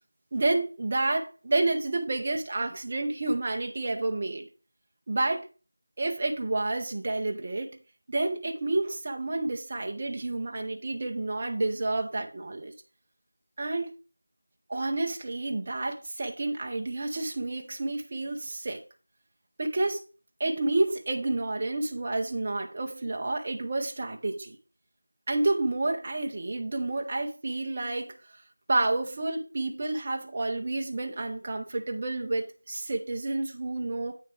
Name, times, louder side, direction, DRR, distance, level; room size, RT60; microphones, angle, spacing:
voice 1, 0.3-4.5 5.1-5.5 6.0-7.8 8.1-12.7 13.6-13.9 14.7-18.8 19.6-20.0 20.4-24.6 25.3-28.4 28.7-34.2, right 2 dB, 25° right, 0.6 m, -29 dB
8.7 x 6.4 x 3.3 m
figure-of-eight pair, 175°, 0 cm